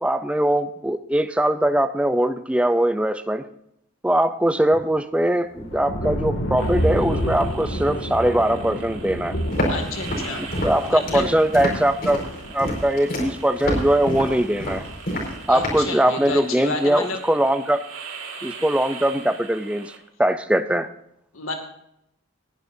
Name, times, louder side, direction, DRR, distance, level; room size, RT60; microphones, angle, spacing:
voice 1, 0.0-3.5 4.0-9.4 10.4-12.2 12.5-14.8 15.5-17.8 18.4-19.9 20.2-20.9, right 1 dB, 5° right, 10 dB, 0.5 m, -21 dB
sound 1, 5.6-11.0 12.2-12.5, equal, 65° left, 2.4 m, -28 dB
sound 2, 6.6-20.0, right 5 dB, 85° right, 2.5 m, -41 dB
Walk footsteps, 9.5-15.9, equal, 45° left, 5.1 m, -28 dB
voice 2, 9.7-10.4 10.9-11.3 15.5-17.2 21.3-21.5, left 3 dB, 90° left, 4 dB, 2.4 m, -30 dB
20.0 x 11.5 x 2.7 m, 0.77 s
head